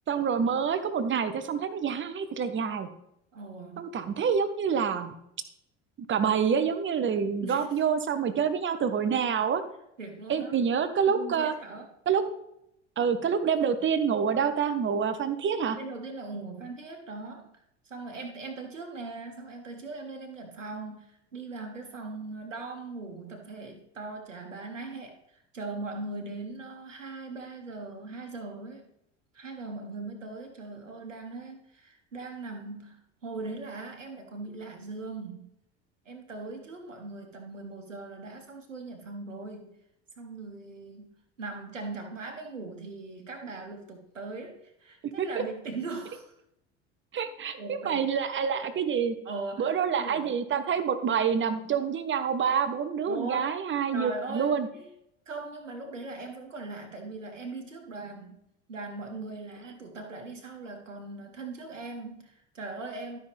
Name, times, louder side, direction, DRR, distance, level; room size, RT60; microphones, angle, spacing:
voice 1, 0.1-2.9 3.8-5.1 6.1-9.6 10.3-11.5 12.1-12.2 13.0-15.8 45.0-45.3 47.1-49.2 49.6-54.7, right 7 dB, 30° right, 10 dB, 1.1 m, -27 dB
voice 2, 3.3-3.9 7.4-7.7 10.0-10.6 11.0-11.9 15.7-17.5 17.8-28.8 29.3-35.5 36.0-39.8 40.2-41.1 41.4-46.3 47.6-48.0 49.2-49.7 50.0-50.4 53.1-53.5 53.9-54.9 55.3-58.4 58.7-63.2, right 3 dB, 85° right, 3 dB, 1.1 m, -40 dB
12.5 x 5.7 x 3.5 m, 0.79 s
figure-of-eight pair, 65°, 37 cm